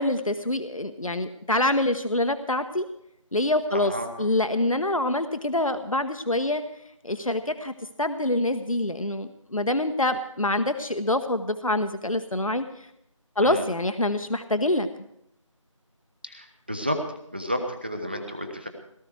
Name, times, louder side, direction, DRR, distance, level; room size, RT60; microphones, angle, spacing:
voice 1, 0.0-2.9 3.3-3.9 4.2-6.6 7.0-7.7 8.0-12.9 13.4-14.9, left 1 dB, 85° left, 8 dB, 1.1 m, -25 dB
voice 2, 3.7-4.1 13.4-13.6 16.2-17.0 17.3-18.7, equal, 20° right, 4 dB, 0.8 m, -31 dB
18.0 x 13.5 x 4.7 m, 0.75 s
figure-of-eight pair, 170°, 17 cm